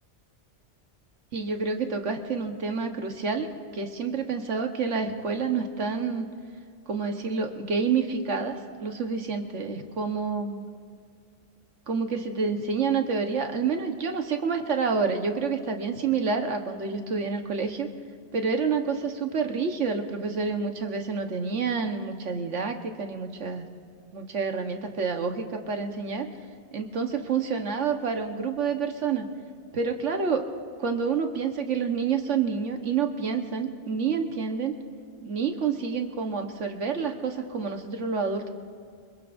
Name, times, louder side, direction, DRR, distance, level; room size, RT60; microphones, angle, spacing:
voice 1, 1.3-6.3 6.9-10.7 11.9-17.9 18.3-23.7 24.1-26.3 26.7-29.3 29.7-30.5 30.8-34.7 35.2-38.5, right 5 dB, 80° right, 5 dB, 1.6 m, -28 dB
25.0 x 22.0 x 2.6 m, 2.3 s
omnidirectional pair, 1.2 m